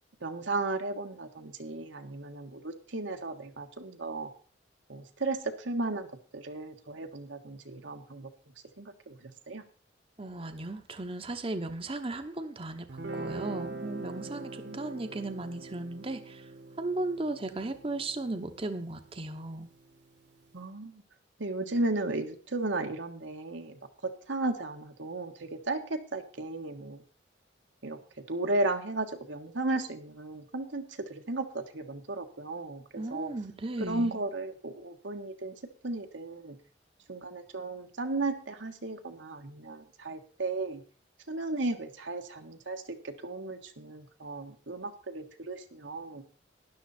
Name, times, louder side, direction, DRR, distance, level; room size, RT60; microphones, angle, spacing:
voice 1, 0.2-4.3 4.9-6.1 6.3-8.3 8.8-9.6 14.6-14.8 20.5-21.0 21.4-23.8 24.3-27.0 27.8-28.0 28.3-30.8 31.1-33.3 33.9-35.5 35.8-36.6 37.1-40.8 41.3-46.2, right 2 dB, 90° right, 5 dB, 1.5 m, -35 dB
voice 2, 10.2-12.9 13.1-16.5 16.8-19.7 33.0-34.2, right 2 dB, 30° right, 7 dB, 0.8 m, -36 dB
Guitar, 12.9-20.0, right 2 dB, 65° right, 1.4 m, -43 dB
12.5 x 11.0 x 4.2 m, 0.41 s
head